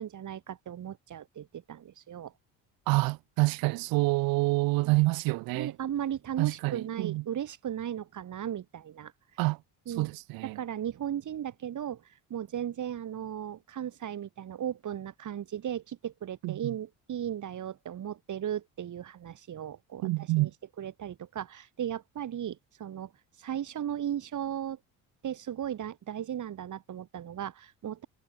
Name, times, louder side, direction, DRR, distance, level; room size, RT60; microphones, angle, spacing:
voice 1, 0.0-2.3 5.5-9.1 9.9-10.1 10.4-12.0 12.3-20.5 20.8-23.1 23.4-24.8 25.2-28.1, right 10 dB, 55° right, 6.8 m, -36 dB
voice 2, 2.9-5.7 6.4-7.2 9.4-9.6 10.0-10.6 16.4-16.6 20.0-20.5, right 21 dB, 80° right, 1.3 m, -27 dB
supercardioid pair, 80°, 35 cm